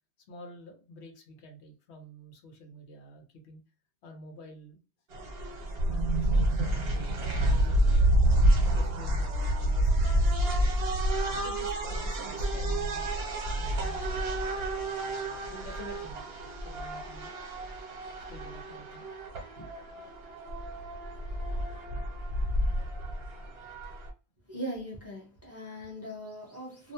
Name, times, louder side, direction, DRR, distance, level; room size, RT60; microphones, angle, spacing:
voice 1, 0.3-3.6 4.0-4.8 5.9-8.0 8.7-10.6 11.4-13.1 13.6-14.0 15.5-16.3 16.6-17.4 18.3-19.1 19.6-19.8, equal, 80° left, 1.0 m, -48 dB
sound 1, 5.1-24.1, right 1 dB, 65° right, 1.0 m, -29 dB
voice 2, 24.5-26.9, equal, 15° right, 0.7 m, -40 dB
2.5 x 2.1 x 2.7 m
omnidirectional pair, 1.1 m